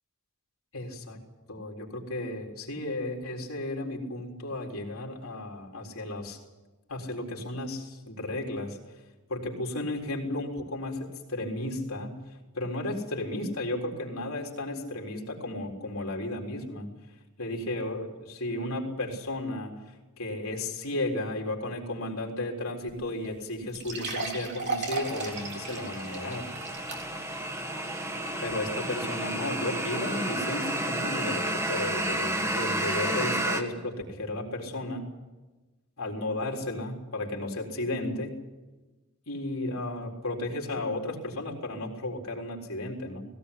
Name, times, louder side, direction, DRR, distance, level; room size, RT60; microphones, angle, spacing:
voice 1, 0.7-1.2 1.5-6.4 6.9-8.8 9.3-12.2 12.5-16.9 17.4-26.5 28.4-35.1 36.0-38.4 39.3-43.2, left 1 dB, 75° left, 0 dB, 3.9 m, -34 dB
sound 1, 22.9-23.0 23.2-23.3 23.7-27.3 27.8-27.9 28.5-28.6, right 3 dB, 55° right, 3.7 m, -35 dB
sound 2, 25.0-33.6, right 1 dB, 15° right, 1.6 m, -31 dB
18.5 x 18.0 x 8.4 m, 1.2 s
head